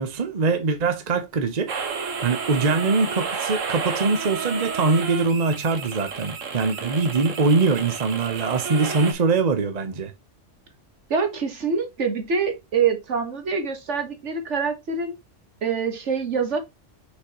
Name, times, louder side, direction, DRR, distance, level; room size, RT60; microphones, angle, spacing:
voice 1, 0.0-1.7 2.2-10.1, right 4 dB, 35° right, 0.9 m, -23 dB
sound 1, 1.7-9.1, right 5 dB, 90° right, 1.6 m, -31 dB
voice 2, 11.1-15.2 15.6-16.6, right 5 dB, 70° right, 1.7 m, -25 dB
6.5 x 5.2 x 2.9 m
omnidirectional pair, 1.3 m